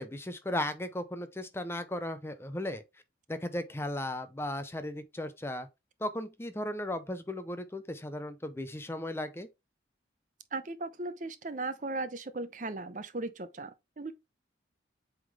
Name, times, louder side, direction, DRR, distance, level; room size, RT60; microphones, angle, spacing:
voice 1, 0.0-2.8 3.3-5.7 6.0-9.5, left 1 dB, 15° left, 0.6 m, -36 dB
voice 2, 10.5-14.1, right 2 dB, 40° right, 0.7 m, -37 dB
8.1 x 3.7 x 3.5 m
head